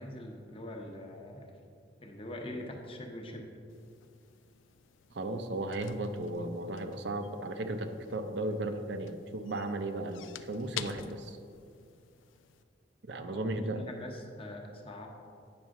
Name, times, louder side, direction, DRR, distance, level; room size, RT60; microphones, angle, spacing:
voice 1, 0.0-1.5 2.0-3.5 13.3-15.1, left 1 dB, 30° left, 1 dB, 0.9 m, -43 dB
sound 1, 3.7-12.6, left 10 dB, 90° left, 0.4 m, -49 dB
voice 2, 5.1-11.4 13.0-13.8, right 2 dB, 65° right, 7 dB, 0.6 m, -35 dB
8.8 x 6.2 x 3.7 m, 2.4 s
head